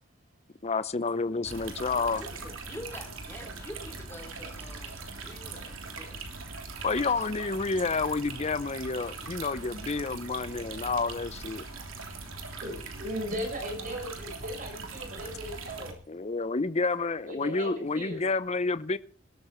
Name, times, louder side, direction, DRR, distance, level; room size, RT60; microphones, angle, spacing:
voice 1, 0.6-2.2 6.8-11.7 16.1-19.0, left 4 dB, 35° left, 0.7 m, -29 dB
sound 1, 1.4-15.9, right 3 dB, 85° right, 3.3 m, -41 dB
voice 2, 1.9-6.3, left 1 dB, 10° left, 3.1 m, -46 dB
voice 3, 12.6-16.0 17.2-18.3, equal, 45° right, 6.2 m, -37 dB
21.0 x 13.0 x 4.4 m
head